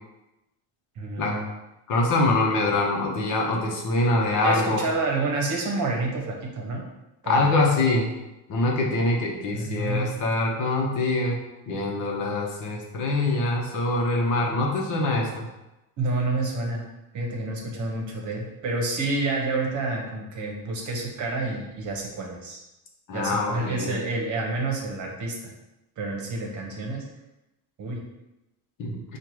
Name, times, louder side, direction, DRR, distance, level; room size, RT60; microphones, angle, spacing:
voice 1, 1.0-1.5 4.4-6.8 7.2-7.4 9.5-10.1 16.0-16.9 17.1-22.6 23.1-25.5 26.0-27.0 27.8-28.0, right 3 dB, 45° right, 0 dB, 1.1 m, -29 dB
voice 2, 1.9-4.9 7.3-8.1 8.5-11.4 11.7-15.5 23.1-23.9 28.8-29.0, left 2 dB, 45° left, 0 dB, 1.0 m, -24 dB
4.5 x 2.5 x 4.7 m, 0.97 s
cardioid pair, 135°, 42 cm